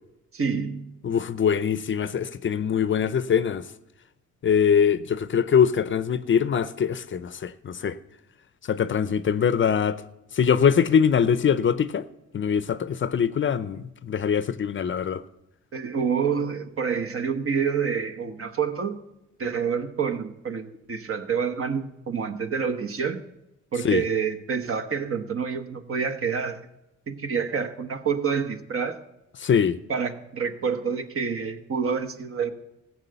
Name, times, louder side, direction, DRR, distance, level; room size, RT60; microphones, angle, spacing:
voice 1, 0.3-0.9 15.7-19.0 19.4-23.2 23.7-26.6 27.1-29.0 29.9-32.5, right 6 dB, 45° right, 1.2 m, -27 dB
voice 2, 1.0-3.7 4.4-8.0 8.7-10.0 10.3-12.1 12.3-15.2 23.8-24.0 29.4-29.8, left 7 dB, 40° left, 0.6 m, -23 dB
15.0 x 8.0 x 6.8 m
cardioid pair, 90°, 30 cm